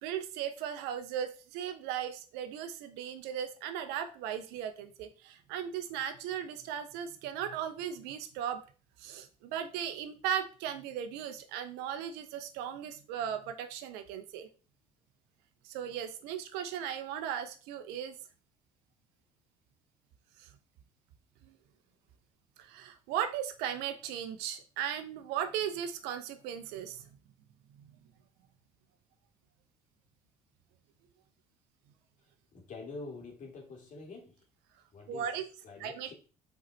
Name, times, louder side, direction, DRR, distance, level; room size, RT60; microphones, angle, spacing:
voice 1, 0.0-8.6 9.0-14.5 15.6-18.1 21.4-21.5 22.6-27.0 35.1-35.5 35.8-36.1, right 9 dB, 75° right, 0.9 m, -37 dB
voice 2, 32.5-34.3 34.9-35.3 35.6-36.1, left 3 dB, 50° left, 2.6 m, -46 dB
5.0 x 4.6 x 4.1 m
hypercardioid pair, 60°, 17 cm